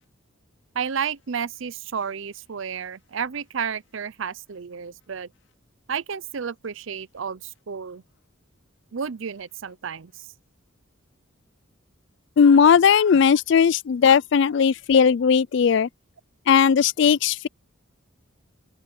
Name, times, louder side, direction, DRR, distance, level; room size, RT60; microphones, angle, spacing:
voice 1, 0.7-5.3 5.9-8.0 8.9-10.3, right 6 dB, 70° right, 0.6 m, -31 dB
voice 2, 12.4-15.9 16.5-17.5, left 6 dB, 60° left, 0.3 m, -17 dB
open air
head